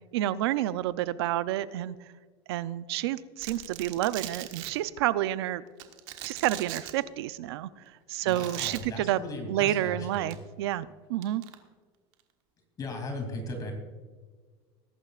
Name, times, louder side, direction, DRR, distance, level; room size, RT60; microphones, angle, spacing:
voice 1, 0.1-2.0 2.5-5.6 6.2-7.7 8.1-9.2 9.5-11.4, right 14 dB, 85° right, 15 dB, 0.6 m, -29 dB
Domestic sounds home sounds, 3.4-4.7 5.8-6.9 8.3-8.8 10.1-10.3 11.2-11.5, right 14 dB, 65° right, 1.4 m, -39 dB
voice 2, 8.2-10.3 12.8-13.7, left 2 dB, 30° left, 3 dB, 2.8 m, -37 dB
20.5 x 11.0 x 2.5 m, 1.5 s
supercardioid pair, 130°, 13 cm